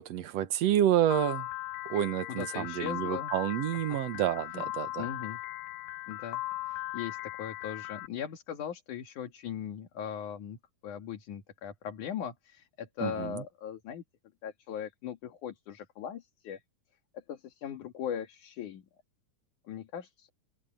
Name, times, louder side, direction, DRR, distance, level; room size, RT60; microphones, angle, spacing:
voice 1, 0.0-1.5 1.9-5.1 13.0-13.4, right 11 dB, 65° right, 1.7 m, -29 dB
Piano, 1.1-8.1, left 19 dB, 85° left, 2.4 m, -38 dB
voice 2, 2.3-3.3 3.9-4.0 4.5-4.7 5.0-5.4 6.1-14.0 14.4-16.6 17.1-18.8 19.7-20.3, left 8 dB, 60° left, 3.4 m, -39 dB
open air
omnidirectional pair, 4.0 m